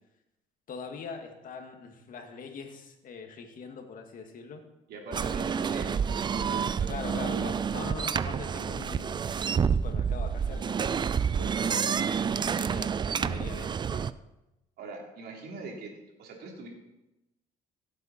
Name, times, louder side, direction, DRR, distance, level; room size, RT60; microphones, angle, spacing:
voice 1, 0.7-4.6 5.1-5.2 6.9-11.8 12.1-12.2 12.5-14.0, left 5 dB, 55° left, 4 dB, 2.0 m, -42 dB
voice 2, 4.9-7.0 11.2-12.5 14.8-15.9 16.2-16.7, right 3 dB, 70° right, 0 dB, 3.3 m, -43 dB
sound 1, 5.1-14.1, right 7 dB, 25° right, 0.3 m, -29 dB
16.5 x 8.2 x 4.3 m, 0.96 s
cardioid pair, 110°, 17 cm